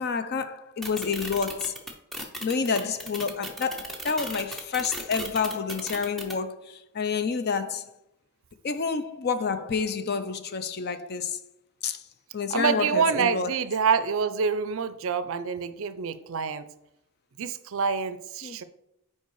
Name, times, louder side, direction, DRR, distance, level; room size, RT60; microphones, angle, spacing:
voice 1, 0.0-1.8 2.4-7.9 8.6-11.4 11.8-12.0 12.3-13.5 18.4-18.6, left 5 dB, 45° left, 0.5 m, -29 dB
sound 1, 0.8-6.3, right 1 dB, ahead, 0.7 m, -36 dB
voice 2, 12.5-16.7 17.4-18.6, right 6 dB, 60° right, 0.5 m, -27 dB
5.6 x 4.7 x 4.7 m
head